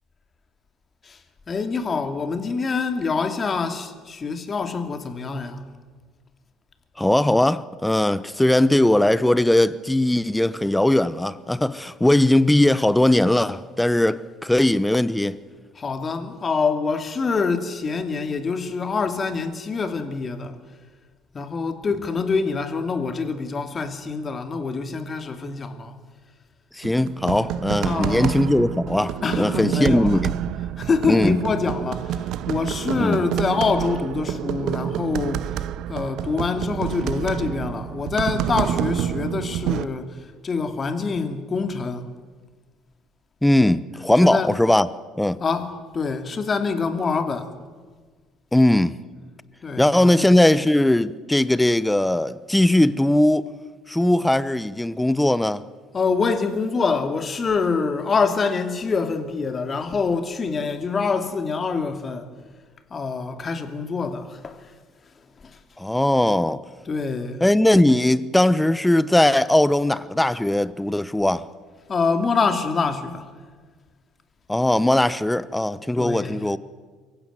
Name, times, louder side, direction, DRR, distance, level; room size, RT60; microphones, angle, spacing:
voice 1, 1.5-5.6 15.8-20.6 21.3-25.9 27.8-28.3 29.2-30.2 30.8-35.5 35.9-42.1 44.2-44.5 45.4-47.5 49.6-50.2 55.9-62.3 62.9-64.7 65.4-65.6 66.9-67.4 71.9-73.3 75.9-76.4, left 4 dB, 35° left, 2.6 m, -25 dB
voice 2, 7.0-15.4 26.7-30.3 31.1-31.4 33.0-33.2 43.4-44.9 45.2-45.4 48.5-49.0 49.8-53.5 53.9-55.6 65.8-66.6 67.4-71.5 74.5-76.6, left 1 dB, 5° left, 1.0 m, -19 dB
sound 1, 26.8-39.9, right 11 dB, 60° right, 0.9 m, -28 dB
24.0 x 15.5 x 9.5 m
hypercardioid pair, 65°, 0 cm